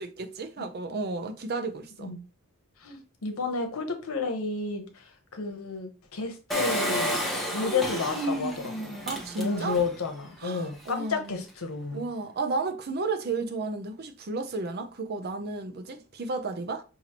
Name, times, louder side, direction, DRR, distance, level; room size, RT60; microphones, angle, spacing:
voice 1, 0.0-2.1 9.1-9.8 10.4-11.4 11.9-16.8, right 3 dB, 50° right, 0.6 m, -33 dB
voice 2, 2.8-9.0 9.4-12.1, left 4 dB, 90° left, 0.9 m, -31 dB
Engine, 6.5-10.0 10.4-10.5 10.7-10.8, equal, ahead, 1.0 m, -30 dB
5.8 x 2.7 x 2.9 m
head